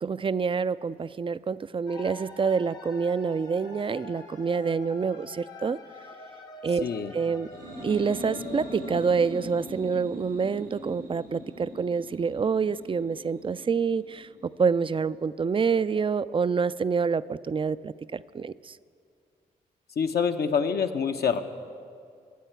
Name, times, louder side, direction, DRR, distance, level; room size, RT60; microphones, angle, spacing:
voice 1, 0.0-5.8 6.6-6.9 7.1-7.5 7.8-18.7, right 5 dB, 30° right, 17 dB, 0.4 m, -27 dB
sound 1, 1.9-9.2, left 3 dB, 85° left, 1.0 m, -46 dB
voice 2, 6.8-7.1 20.0-21.4, left 6 dB, 60° left, 5 dB, 0.8 m, -26 dB
sound 2, 7.4-14.9, equal, 90° right, 2.8 m, -42 dB
22.0 x 8.0 x 4.6 m, 2.2 s
supercardioid pair, 40°, 18 cm